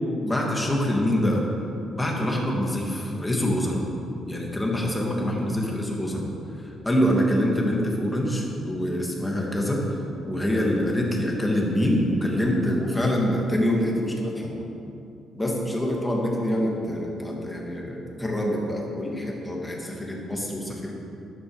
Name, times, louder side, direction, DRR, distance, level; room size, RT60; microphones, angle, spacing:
voice 1, 0.2-1.4 1.9-3.8 4.3-6.3 6.8-9.8 10.2-14.6 15.3-20.9, equal, 10° left, -2 dB, 2.3 m, -25 dB
12.5 x 11.5 x 5.0 m, 2.7 s
cardioid pair, 130°, 0 cm